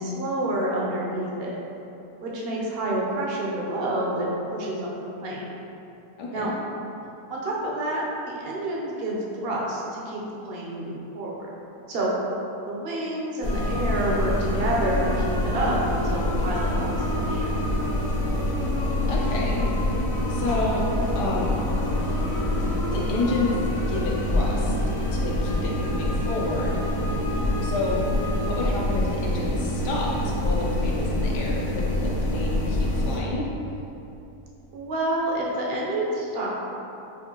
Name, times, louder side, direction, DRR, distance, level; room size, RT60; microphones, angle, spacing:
voice 1, 0.0-1.5 2.2-4.9 5.2-5.5 6.3-6.5 7.3-11.5 11.9-12.1 12.7-17.5 34.7-36.5, right 1 dB, 70° right, -4 dB, 0.5 m, -28 dB
voice 2, 6.2-6.5 19.1-20.0 20.3-20.8 21.1-21.5 22.9-23.6 23.9-24.7 25.1-26.8 27.6-28.0 28.4-33.5, left 3 dB, 85° left, -4 dB, 1.4 m, -30 dB
sound 1, 13.4-28.6, left 1 dB, 70° left, 1.1 m, -36 dB
sound 2, 13.4-33.2, left 1 dB, 50° left, 0.6 m, -26 dB
6.2 x 2.5 x 2.8 m, 2.9 s
omnidirectional pair, 1.7 m